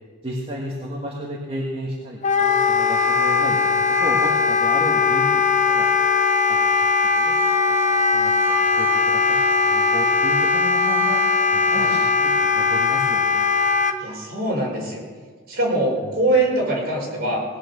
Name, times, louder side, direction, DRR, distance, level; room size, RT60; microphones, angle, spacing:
voice 1, 0.2-5.9 6.5-6.9 7.2-7.4 7.7-11.2 11.5-13.5 16.0-16.2, equal, 30° right, -3 dB, 1.7 m, -33 dB
Wind instrument woodwind instrument, 2.2-14.0, left 4 dB, 35° left, 0.8 m, -19 dB
voice 2, 14.0-15.0 15.5-17.4, right 1 dB, 45° right, -3 dB, 5.0 m, -23 dB
19.5 x 8.8 x 6.8 m, 1.5 s
head